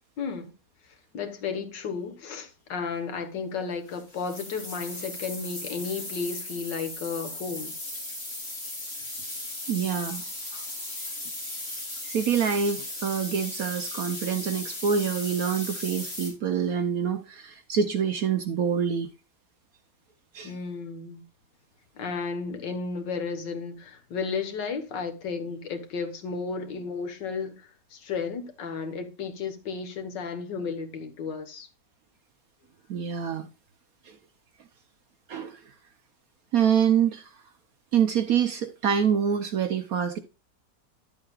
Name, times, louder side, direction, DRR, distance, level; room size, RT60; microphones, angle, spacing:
voice 1, 0.2-0.5 1.1-7.8 20.4-21.2 22.0-31.7, left 5 dB, 90° left, 2.0 m, -33 dB
sound 1, 3.9-16.3, left 1 dB, 35° left, 3.6 m, -37 dB
voice 2, 9.7-10.2 12.0-19.1 20.3-20.5 32.9-33.5 34.0-34.2 35.3-35.6 36.5-37.3 37.9-40.2, right 7 dB, 65° right, 1.1 m, -26 dB
11.5 x 7.7 x 2.4 m
omnidirectional pair, 1.9 m